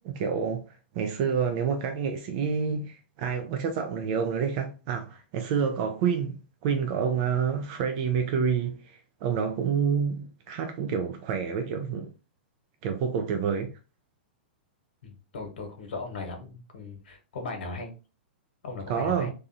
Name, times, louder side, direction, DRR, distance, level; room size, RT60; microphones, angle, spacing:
voice 1, 0.0-12.1 12.8-13.7 18.9-19.3, right 6 dB, 50° right, 0.4 m, -28 dB
voice 2, 15.0-17.9 18.6-19.3, left 3 dB, 70° left, 1.0 m, -38 dB
2.7 x 2.3 x 2.6 m
hypercardioid pair, 115°, 6 cm